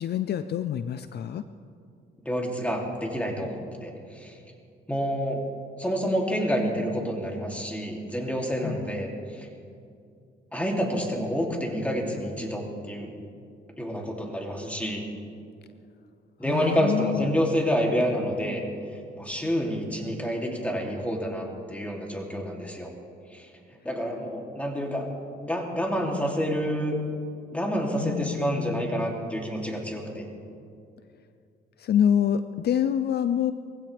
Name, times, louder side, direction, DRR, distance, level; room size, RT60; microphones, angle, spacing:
voice 1, 0.0-1.4 8.6-8.9 16.4-17.4 28.0-29.1 31.8-33.5, left 9 dB, 55° left, 12 dB, 0.5 m, -26 dB
voice 2, 2.2-4.4 4.9-5.4 5.8-9.5 10.5-13.1 13.8-15.0 16.4-18.6 19.2-22.9 23.3-23.5 23.8-25.1 25.4-27.0 27.5-30.3, equal, 5° left, 0 dB, 2.9 m, -28 dB
21.5 x 16.0 x 3.4 m, 2.4 s
cardioid pair, 90°, 20 cm